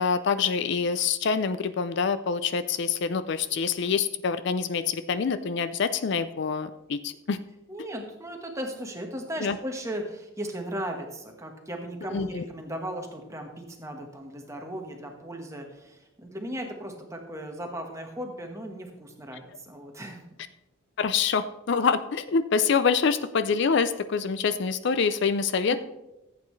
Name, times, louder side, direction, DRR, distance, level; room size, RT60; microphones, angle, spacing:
voice 1, 0.0-7.4 7.8-7.9 9.4-9.6 12.1-12.4 21.0-25.8, left 5 dB, 60° left, 12 dB, 0.4 m, -26 dB
voice 2, 7.7-20.2, right 1 dB, 15° right, 3 dB, 1.3 m, -37 dB
14.5 x 8.4 x 3.2 m, 0.97 s
head